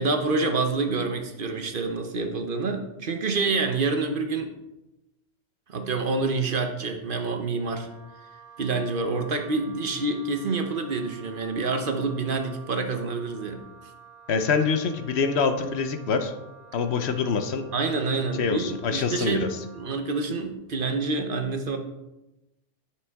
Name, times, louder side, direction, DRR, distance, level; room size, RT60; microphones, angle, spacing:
voice 1, 0.0-4.5 5.7-7.9 8.6-13.7 17.7-21.8, right 3 dB, 55° right, 5 dB, 0.9 m, -27 dB
Wind instrument woodwind instrument, 7.5-20.0, right 7 dB, 25° left, 2.2 m, -50 dB
voice 2, 14.3-16.3 16.7-17.7 18.4-19.5, left 5 dB, 70° left, 8 dB, 1.0 m, -25 dB
9.5 x 6.4 x 3.5 m, 0.97 s
omnidirectional pair, 1.2 m